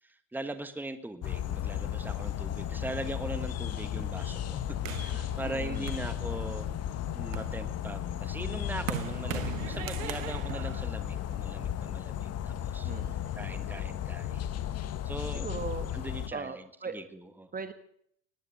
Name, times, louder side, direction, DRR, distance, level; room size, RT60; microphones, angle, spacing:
voice 1, 0.0-6.7 7.2-12.9 13.4-14.4 14.8-15.4 15.9-16.6 16.9-17.5, right 2 dB, 5° right, 10 dB, 1.4 m, -40 dB
sound 1, 1.2-16.3, left 10 dB, 40° left, 1.4 m, -34 dB
sound 2, 4.8-6.7 7.1-11.8, right 11 dB, 90° right, 1.3 m, -40 dB
voice 2, 5.4-5.9 12.8-13.4 15.3-16.0 16.3-17.0 17.5-17.7, right 5 dB, 20° right, 10 dB, 1.3 m, -39 dB
19.0 x 9.7 x 7.7 m, 0.67 s
hypercardioid pair, 95°, 38 cm